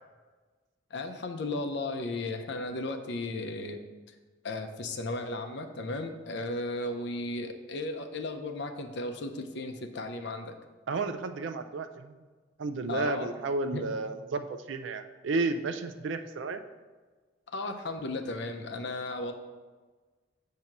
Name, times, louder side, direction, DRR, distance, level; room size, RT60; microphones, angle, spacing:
voice 1, 0.9-3.8 4.4-10.5 12.9-13.3 13.7-13.9 17.5-19.3, left 2 dB, 60° left, 6 dB, 0.6 m, -35 dB
voice 2, 10.9-12.2 12.6-16.6, right 3 dB, 65° right, 9 dB, 0.4 m, -32 dB
7.6 x 2.8 x 5.8 m, 1.3 s
head